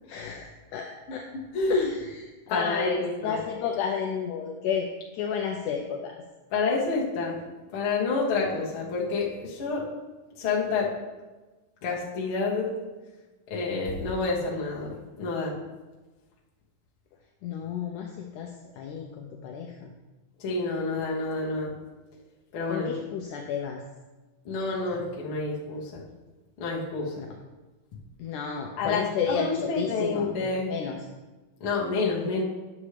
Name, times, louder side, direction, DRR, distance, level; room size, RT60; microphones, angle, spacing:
voice 1, 0.1-1.3 1.7-4.9 5.1-6.2 17.4-19.9 22.7-23.8 27.2-27.3 28.2-30.3 30.7-31.0, left 7 dB, 80° left, 2 dB, 1.9 m, -32 dB
voice 2, 1.5-1.9 2.5-3.4 6.5-7.4 7.7-9.8 10.4-10.9 11.8-12.7 13.5-15.5 20.4-21.7 22.5-22.9 24.4-26.0 26.6-27.2 28.8-30.7 31.6-32.4, left 3 dB, 50° left, -4 dB, 1.7 m, -28 dB
9.7 x 7.3 x 3.3 m, 1.2 s
omnidirectional pair, 4.0 m